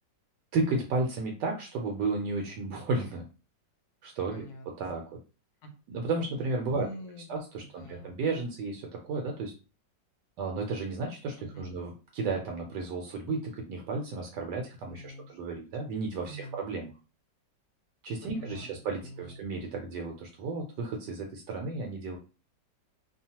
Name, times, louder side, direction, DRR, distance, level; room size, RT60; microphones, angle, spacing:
voice 1, 0.5-3.2 4.0-4.5 4.8-5.0 5.9-6.9 7.3-9.5 10.4-16.9 18.0-22.2, right 3 dB, 75° right, 1 dB, 1.1 m, -33 dB
voice 2, 4.3-4.9 5.6-5.7 6.6-8.1 11.4-11.7 14.9-15.4 15.7-15.8 16.2-16.6 18.2-19.4, equal, 70° left, 4 dB, 1.1 m, -46 dB
2.9 x 2.1 x 2.8 m, 0.33 s
omnidirectional pair, 1.9 m